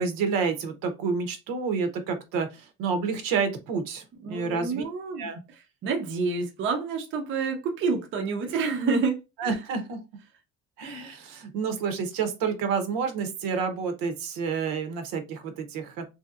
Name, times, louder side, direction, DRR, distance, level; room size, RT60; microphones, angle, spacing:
voice 1, 0.0-4.8 5.2-5.4 9.4-10.0 10.8-16.1, right 5 dB, 70° right, 0.8 m, -29 dB
voice 2, 4.2-5.3 5.8-9.6, right 4 dB, 35° right, 0.5 m, -28 dB
3.0 x 2.7 x 2.3 m
cardioid pair, 155°, 35 cm